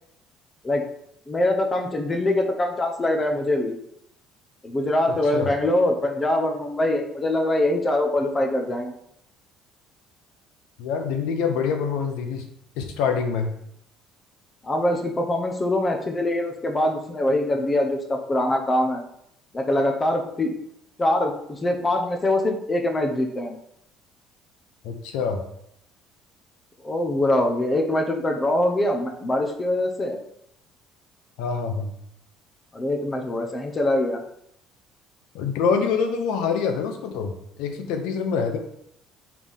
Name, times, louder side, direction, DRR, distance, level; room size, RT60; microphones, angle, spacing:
voice 1, 1.3-3.7 4.6-8.9 14.6-19.0 19.5-20.5 21.0-23.6 26.8-30.2 32.7-34.2, left 1 dB, 20° left, 3 dB, 0.8 m, -23 dB
voice 2, 10.8-12.5 12.8-13.5 24.8-25.4 31.4-31.9 35.3-37.3 37.6-38.6, left 6 dB, 85° left, 6 dB, 0.9 m, -25 dB
4.7 x 3.6 x 5.5 m, 0.73 s
cardioid pair, 140°, 0 cm